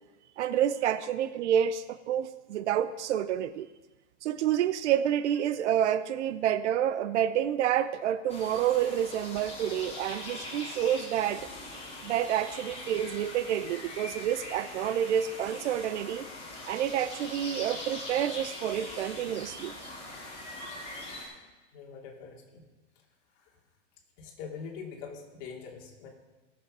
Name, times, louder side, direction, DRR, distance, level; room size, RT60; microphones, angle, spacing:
voice 1, 0.4-3.7 4.2-11.4 12.0-16.3 16.7-19.9, right 10 dB, 65° right, 14 dB, 0.7 m, -28 dB
sound 1, 8.3-21.2, left 2 dB, 15° left, 4.1 m, -42 dB
voice 2, 21.7-22.7 23.4-23.5 24.2-26.1, left 6 dB, 40° left, 0 dB, 2.6 m, -43 dB
17.5 x 7.2 x 5.4 m, 1.2 s
supercardioid pair, 150°, 37 cm